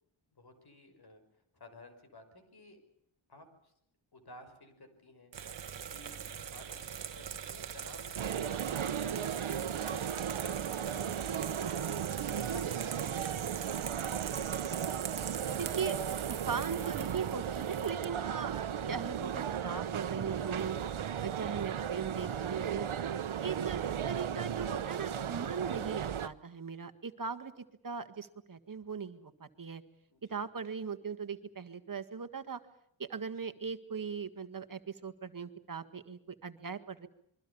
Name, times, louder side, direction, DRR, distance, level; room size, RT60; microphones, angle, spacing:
voice 1, 0.3-1.2 1.5-2.8 3.3-3.7 4.1-5.3 5.9-9.4 9.8-11.9 12.5-13.4 30.1-30.4, left 1 dB, 50° left, 8 dB, 5.8 m, -54 dB
sound 1, 5.3-18.1, right 8 dB, 60° right, 1.3 m, -42 dB
sound 2, 8.2-26.3, right 8 dB, 80° right, 1.1 m, -36 dB
voice 2, 15.5-20.8 21.2-22.9 23.4-29.8 30.3-32.6 33.0-37.1, right 6 dB, 40° right, 8 dB, 1.8 m, -39 dB
26.5 x 23.0 x 7.0 m, 0.73 s
wide cardioid pair, 140°, 48 cm